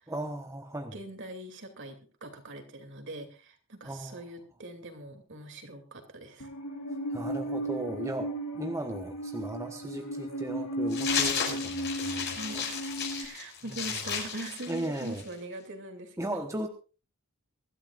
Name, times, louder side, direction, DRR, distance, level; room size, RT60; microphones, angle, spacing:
voice 1, 0.1-0.9 3.8-4.2 7.1-12.6 13.7-14.0 14.7-15.2 16.2-16.7, right 1 dB, 15° right, 4 dB, 1.2 m, -37 dB
voice 2, 0.9-6.5 12.3-12.9 13.1-16.4, right 2 dB, 55° right, 5 dB, 2.9 m, -42 dB
Musical instrument, 6.4-13.2, right 1 dB, 85° left, 3.3 m, -35 dB
sound 1, 10.9-15.3, left 6 dB, 50° left, 5.9 m, -33 dB
23.5 x 13.0 x 2.5 m, 0.34 s
head